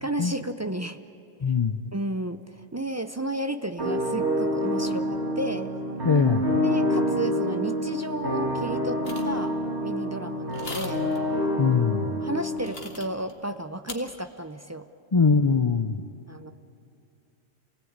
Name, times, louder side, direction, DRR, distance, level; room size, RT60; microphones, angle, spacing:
voice 1, 0.0-1.0 1.9-5.7 6.6-11.0 12.2-14.8 16.3-16.5, right 1 dB, 25° right, 8 dB, 0.3 m, -33 dB
voice 2, 1.4-1.8 6.0-6.4 11.6-12.2 15.1-16.0, left 5 dB, 35° left, 7 dB, 0.5 m, -22 dB
sound 1, 3.8-12.7, equal, 60° right, 3.2 m, -27 dB
sound 2, 9.0-9.4 10.5-11.2 12.6-13.3 13.9-14.0, left 3 dB, 50° left, 2.1 m, -39 dB
28.0 x 18.0 x 8.7 m, 2.6 s
omnidirectional pair, 1.3 m